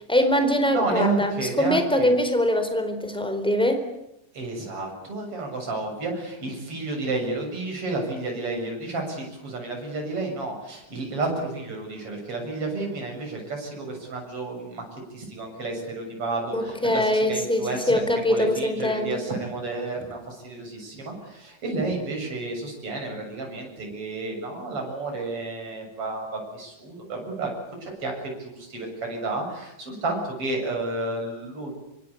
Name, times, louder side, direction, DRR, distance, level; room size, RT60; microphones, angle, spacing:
voice 1, 0.1-3.8 16.5-19.2, equal, ahead, 8 dB, 3.6 m, -23 dB
voice 2, 0.7-2.1 4.3-14.8 15.1-18.0 18.3-31.7, right 2 dB, 40° right, 1 dB, 8.3 m, -31 dB
26.0 x 25.0 x 8.6 m, 0.86 s
omnidirectional pair, 4.0 m